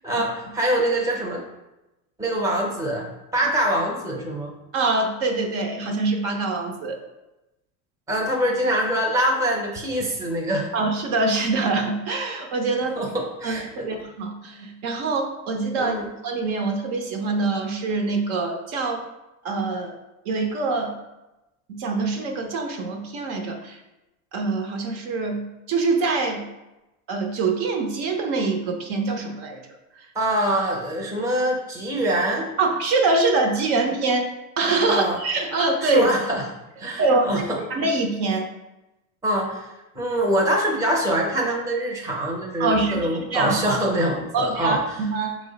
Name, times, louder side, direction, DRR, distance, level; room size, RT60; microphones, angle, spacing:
voice 1, 0.0-1.4 2.2-3.1 3.3-4.5 8.1-10.7 12.9-13.9 15.8-16.1 30.1-32.5 34.9-35.2 35.8-36.4 36.8-37.6 39.2-39.7 39.9-44.8, right 1 dB, 5° right, -1 dB, 0.7 m, -24 dB
voice 2, 4.7-7.0 10.7-13.0 13.4-16.0 16.2-19.0 19.4-20.0 20.3-20.9 21.7-23.8 24.3-25.4 25.7-26.4 27.1-29.6 32.6-34.3 34.6-36.1 37.0-38.5 42.6-43.8 44.3-45.4, right 3 dB, 55° right, 3 dB, 0.7 m, -24 dB
4.6 x 2.0 x 3.9 m, 0.97 s
supercardioid pair, 115°, 43 cm